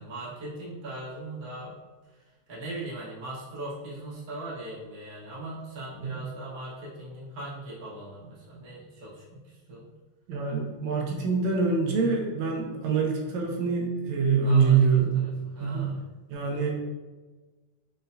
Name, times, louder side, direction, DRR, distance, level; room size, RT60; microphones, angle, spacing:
voice 1, 0.0-1.8 2.1-9.9 14.4-14.8 15.1-16.0 16.4-16.7, right 1 dB, 60° right, -10 dB, 0.5 m, -40 dB
voice 2, 10.3-15.1 15.6-15.9 16.3-16.7, right 5 dB, 80° right, -1 dB, 1.7 m, -25 dB
6.3 x 2.2 x 2.6 m, 1.3 s
omnidirectional pair, 3.5 m